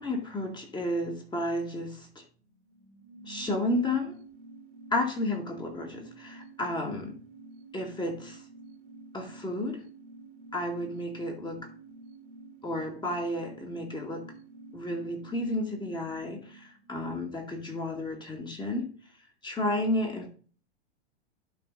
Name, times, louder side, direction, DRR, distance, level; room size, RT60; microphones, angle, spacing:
voice 1, 0.0-2.2 3.3-4.2 4.9-7.1 7.7-8.4 9.1-9.8 10.5-11.7 12.6-14.2 14.7-18.8 19.4-20.3, left 1 dB, 15° left, 2 dB, 2.3 m, -32 dB
sound 1, 2.5-17.7 18.0-18.1, right 3 dB, 55° right, 1.8 m, -50 dB
11.5 x 4.8 x 4.0 m, 0.40 s
figure-of-eight pair, 100°, 34 cm